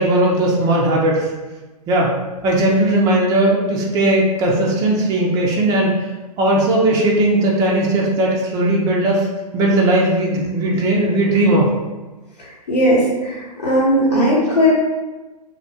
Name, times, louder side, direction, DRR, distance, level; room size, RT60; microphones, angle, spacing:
voice 1, 0.0-1.3 1.9-2.1 2.4-5.9 6.4-9.3 9.5-11.7, right 1 dB, 15° right, -2 dB, 0.4 m, -17 dB
voice 2, 12.7-13.4 13.6-14.7, equal, 80° left, -5 dB, 1.0 m, -16 dB
2.2 x 2.1 x 2.7 m, 1.2 s
hypercardioid pair, 120°, 21 cm